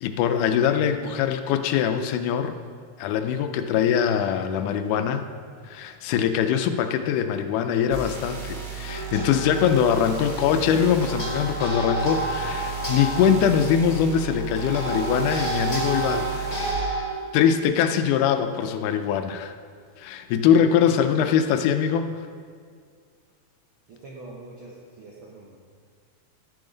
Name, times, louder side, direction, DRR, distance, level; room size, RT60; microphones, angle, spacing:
voice 1, 0.0-2.6 3.0-5.3 5.6-16.6 17.3-19.5 20.0-22.2, left 8 dB, 80° left, 8 dB, 2.0 m, -22 dB
sound 1, 7.9-16.7, right 8 dB, 35° right, 1.1 m, -35 dB
sound 2, 8.9-17.1, right 1 dB, 25° left, 0.8 m, -31 dB
voice 2, 23.9-25.6, right 2 dB, 70° right, -4 dB, 1.2 m, -44 dB
11.5 x 8.7 x 3.9 m, 2.1 s
omnidirectional pair, 3.8 m